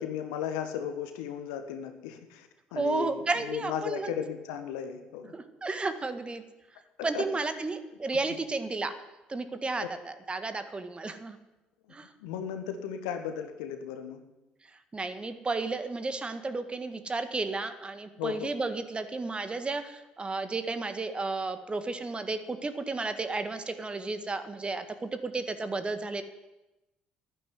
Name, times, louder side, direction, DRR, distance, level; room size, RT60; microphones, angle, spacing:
voice 1, 0.0-5.3 7.1-7.3 9.8-9.9 12.2-14.2 18.2-18.5, left 8 dB, 70° left, 7 dB, 1.6 m, -35 dB
voice 2, 2.8-4.1 5.3-6.4 7.0-8.9 9.3-11.4 11.9-12.1 14.9-26.2, right 3 dB, 25° right, 10 dB, 1.8 m, -33 dB
11.5 x 9.9 x 9.8 m, 1.0 s
figure-of-eight pair, 50°, 4 cm